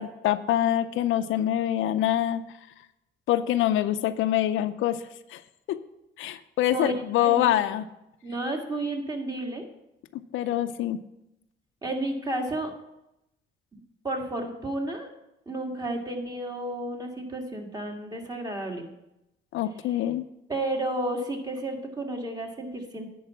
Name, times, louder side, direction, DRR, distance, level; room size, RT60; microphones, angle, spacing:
voice 1, 0.0-2.4 3.3-5.0 5.3-5.4 5.7-5.8 6.2-7.9 10.1-11.0 19.5-20.2, left 12 dB, 85° left, 10 dB, 0.6 m, -25 dB
voice 2, 8.2-9.6 11.8-12.7 14.0-15.1 15.4-18.9 20.5-23.1, right 1 dB, 20° right, 2 dB, 1.9 m, -31 dB
10.0 x 4.7 x 7.1 m, 0.87 s
cardioid pair, 90°, 20 cm